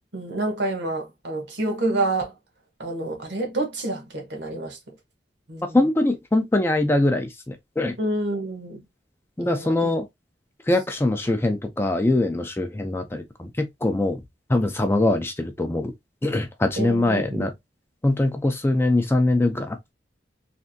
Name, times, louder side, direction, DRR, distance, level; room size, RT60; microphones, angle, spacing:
voice 1, 0.1-2.3 2.8-4.8 5.5-5.8 8.0-8.8 9.4-9.9 16.8-17.5, right 2 dB, 70° right, 1.2 m, -28 dB
voice 2, 5.7-7.9 9.4-10.1 10.7-14.2 14.5-15.9 16.2-17.5 18.0-19.9, left 2 dB, 15° left, 0.4 m, -22 dB
3.3 x 2.6 x 2.6 m
head